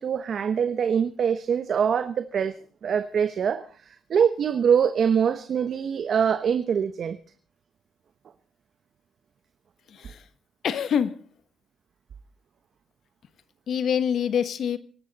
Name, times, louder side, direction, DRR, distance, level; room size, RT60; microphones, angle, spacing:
voice 1, 0.0-7.2, right 7 dB, 55° right, 1.0 m, -24 dB
voice 2, 9.9-10.2 10.6-11.2 13.7-14.8, left 8 dB, 65° left, 1.3 m, -25 dB
23.5 x 12.0 x 4.2 m
cardioid pair, 90°, 0 cm